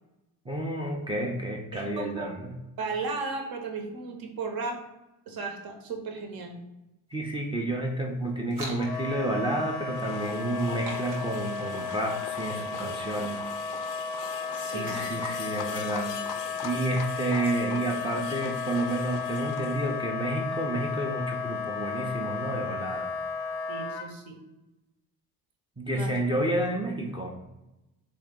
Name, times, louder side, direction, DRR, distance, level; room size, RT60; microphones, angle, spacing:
voice 1, 0.5-2.5 7.1-13.4 14.6-16.3 16.6-23.1 25.8-27.3, right 1 dB, 10° right, 1 dB, 0.6 m, -30 dB
voice 2, 1.7-2.3 2.8-4.8 5.3-6.6 14.5-15.1 23.7-24.4 25.9-26.4, right 4 dB, 50° right, 3 dB, 1.0 m, -35 dB
sound 1, 7.1-15.7, right 1 dB, 90° right, 1.1 m, -47 dB
Wind instrument woodwind instrument, 8.8-24.1, left 5 dB, 90° left, 0.7 m, -34 dB
sound 2, 9.9-20.0, left 8 dB, 45° left, 0.4 m, -41 dB
3.5 x 2.6 x 3.7 m, 0.97 s
hypercardioid pair, 60°, 46 cm